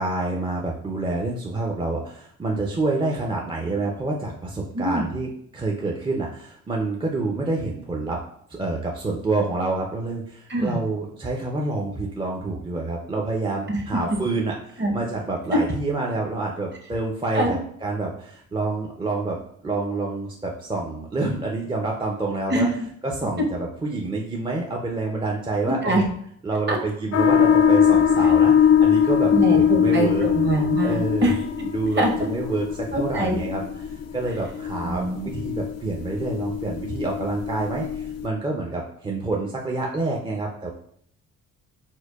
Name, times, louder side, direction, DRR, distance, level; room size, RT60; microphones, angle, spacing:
voice 1, 0.0-8.2 8.5-19.4 19.6-22.7 23.0-26.0 26.4-30.2 30.8-31.3 31.7-40.7, right 2 dB, 15° right, -1 dB, 0.4 m, -28 dB
voice 2, 4.7-5.1 10.5-10.8 13.7-14.2 14.8-14.9 17.3-17.6 22.5-22.9 25.8-26.0 26.7-26.8 28.2-28.3 29.3-31.4 32.0-32.1 32.9-33.4 34.8-35.3, right 2 dB, 35° right, 0 dB, 0.8 m, -24 dB
sound 1, 27.1-38.2, left 8 dB, 55° left, 0.4 m, -21 dB
4.4 x 2.2 x 2.3 m, 0.66 s
cardioid pair, 90°, 30 cm